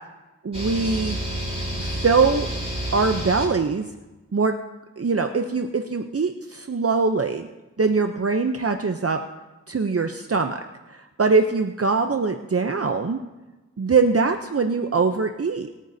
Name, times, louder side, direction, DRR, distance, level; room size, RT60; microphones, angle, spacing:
voice 1, 0.4-1.2 1.8-2.5 2.9-3.9 4.3-4.5 5.0-7.5 7.8-9.2 9.7-10.6 10.9-13.2 13.8-15.7, right 4 dB, 50° right, 6 dB, 0.6 m, -22 dB
sound 1, 0.5-3.4, right 1 dB, 20° right, 4.7 m, -29 dB
25.0 x 9.1 x 2.7 m, 1.1 s
wide cardioid pair, 45°, 30 cm